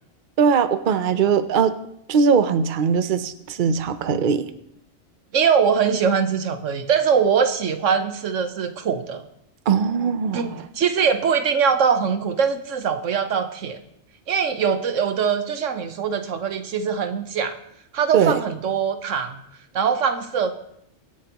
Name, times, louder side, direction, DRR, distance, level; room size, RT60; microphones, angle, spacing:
voice 1, 0.4-1.7 2.1-4.5 9.7-10.6 18.1-18.4, right 6 dB, 50° right, 11 dB, 0.8 m, -20 dB
voice 2, 5.3-9.2 10.3-13.8 14.3-17.5 17.9-19.4 19.7-20.5, right 6 dB, 90° right, 8 dB, 1.3 m, -22 dB
23.5 x 8.6 x 3.0 m, 0.74 s
omnidirectional pair, 1.2 m